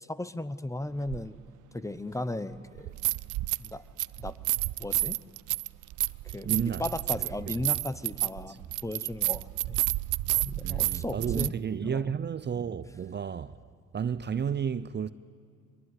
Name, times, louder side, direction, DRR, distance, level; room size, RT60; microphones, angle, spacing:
voice 1, 0.1-1.4 1.7-2.9 3.6-3.8 4.2-4.4 4.8-5.2 6.3-9.8 10.4-11.6 11.8-12.0, left 1 dB, 10° left, 0.9 m, -36 dB
sound 1, 1.1-1.2 2.8-3.7 4.0-11.5, right 17 dB, 80° right, 0.5 m, -30 dB
voice 2, 6.4-6.8 7.2-7.5 8.5-8.6 10.6-13.5 13.9-15.1, right 7 dB, 35° right, 0.6 m, -32 dB
23.5 x 21.5 x 9.7 m
cardioid pair, 90°, 30 cm